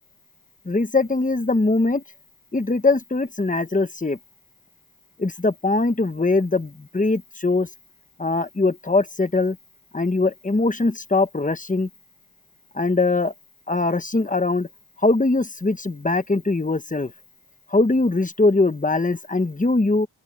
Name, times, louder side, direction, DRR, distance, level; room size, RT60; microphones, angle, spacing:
voice 1, 0.6-2.0 2.5-4.2 5.2-7.7 8.2-9.6 9.9-11.9 12.7-13.3 13.7-14.7 15.0-17.1 17.7-20.1, left 3 dB, 15° left, 1.2 m, -21 dB
open air
wide cardioid pair, 70°, 47 cm